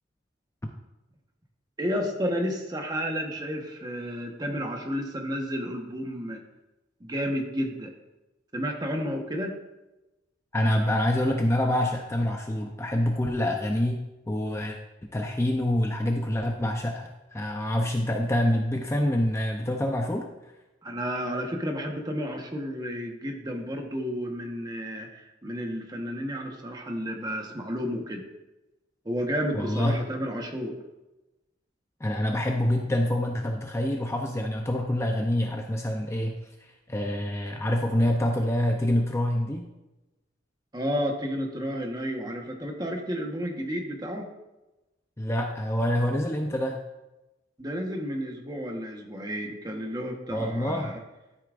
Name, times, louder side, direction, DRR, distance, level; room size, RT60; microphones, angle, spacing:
voice 1, 1.8-6.4 7.0-7.9 8.5-9.6 20.8-28.2 29.0-30.8 40.7-44.3 47.6-51.0, equal, 20° right, 2 dB, 1.2 m, -31 dB
voice 2, 10.5-14.0 14.3-14.8 15.1-20.3 29.5-30.0 32.0-36.4 36.9-39.7 45.2-46.8 50.3-50.9, left 1 dB, 15° left, 2 dB, 0.6 m, -26 dB
12.5 x 8.4 x 2.5 m, 1.0 s
head